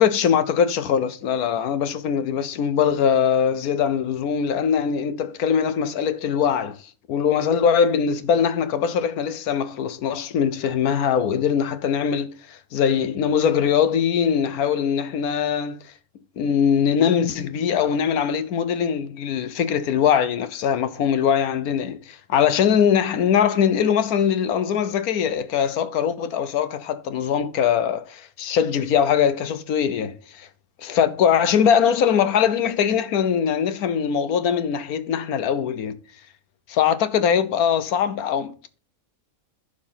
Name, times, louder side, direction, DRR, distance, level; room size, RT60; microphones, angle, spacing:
voice 1, 0.0-6.8 7.1-15.8 16.4-30.5 30.8-36.0 36.7-38.8, left 8 dB, 85° left, 1.3 m, -21 dB
11.0 x 4.4 x 5.6 m
omnidirectional pair, 1.5 m